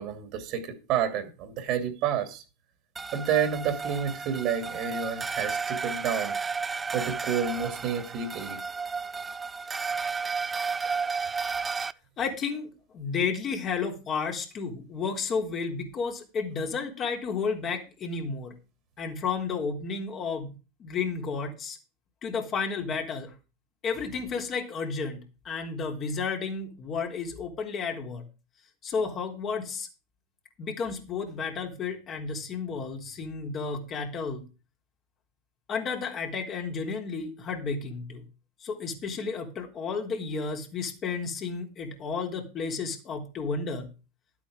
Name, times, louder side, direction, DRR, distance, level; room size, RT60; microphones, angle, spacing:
voice 1, 0.0-2.4 3.1-6.3 6.9-8.6, right 8 dB, 50° right, 2.5 m, -29 dB
sound 1, 3.0-11.9, right 5 dB, 20° right, 0.6 m, -33 dB
voice 2, 12.2-18.5 19.0-20.5 20.8-21.8 22.2-23.3 23.8-25.2 25.4-28.2 28.8-29.9 30.6-34.5 35.7-38.3 38.6-43.9, left 5 dB, 35° left, 3.6 m, -32 dB
12.0 x 8.4 x 5.1 m
hypercardioid pair, 90°, 0 cm